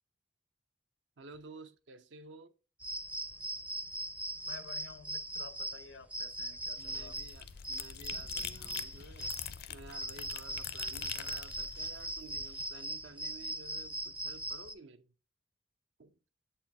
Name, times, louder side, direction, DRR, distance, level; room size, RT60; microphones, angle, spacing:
voice 1, 1.2-2.5 6.8-9.3 9.7-15.1 16.0-16.2, right 3 dB, 80° right, 0.7 m, -53 dB
sound 1, 2.8-14.7, right 1 dB, 5° right, 0.4 m, -40 dB
voice 2, 4.5-7.2, left 4 dB, 90° left, 0.7 m, -52 dB
sound 2, 6.5-12.7, left 9 dB, 55° left, 0.4 m, -45 dB
7.6 x 4.4 x 3.4 m
head